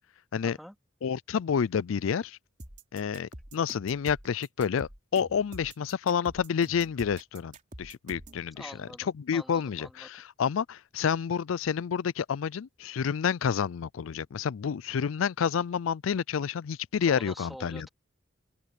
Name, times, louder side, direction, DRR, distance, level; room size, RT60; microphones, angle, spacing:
voice 1, 0.4-0.7 8.6-10.1 17.0-17.9, equal, ahead, 2.5 m, -45 dB
voice 2, 1.0-2.4 2.9-7.5 7.8-8.7 9.2-10.1 10.4-17.9, left 7 dB, 80° left, 0.4 m, -29 dB
sound 1, 2.6-8.4, right 1 dB, 40° right, 3.6 m, -46 dB
open air
head